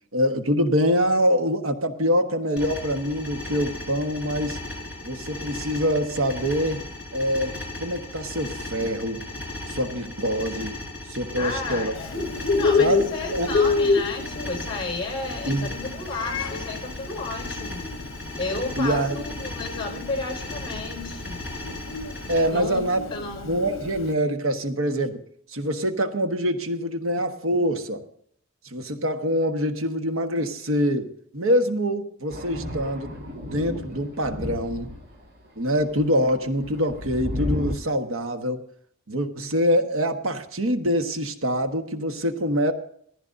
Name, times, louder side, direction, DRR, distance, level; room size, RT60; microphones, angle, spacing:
voice 1, 0.1-4.6 5.0-6.8 7.1-9.2 9.7-10.8 11.1-12.3 12.8-13.5 15.5-15.8 18.8-19.2 22.3-23.0 23.4-25.2 25.5-28.0 28.7-33.2 33.5-34.9 35.6-38.6 39.1-42.7, equal, 75° right, 6 dB, 1.2 m, -25 dB
sound 1, 2.6-22.4, left 2 dB, 5° right, 6.1 m, -36 dB
voice 2, 11.4-12.1 12.5-17.8 18.4-21.4 22.5-22.8 23.1-23.5, left 3 dB, 25° left, 2 dB, 4.9 m, -32 dB
Bird, 12.0-24.1, left 4 dB, 70° left, 0.9 m, -28 dB
Thunder, 32.3-35.3 35.8-37.8, left 1 dB, 55° right, 2.7 m, -33 dB
18.0 x 15.0 x 2.6 m, 0.64 s
head